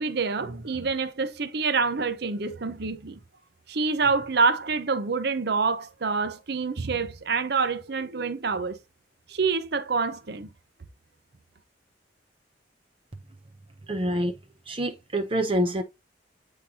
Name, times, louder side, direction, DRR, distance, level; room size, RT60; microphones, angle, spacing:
voice 1, 0.0-3.2 3.7-8.8 9.3-10.5, right 4 dB, 65° right, 0.8 m, -27 dB
voice 2, 13.9-14.3 14.7-15.8, right 1 dB, 30° right, 0.7 m, -26 dB
9.0 x 3.9 x 2.8 m
head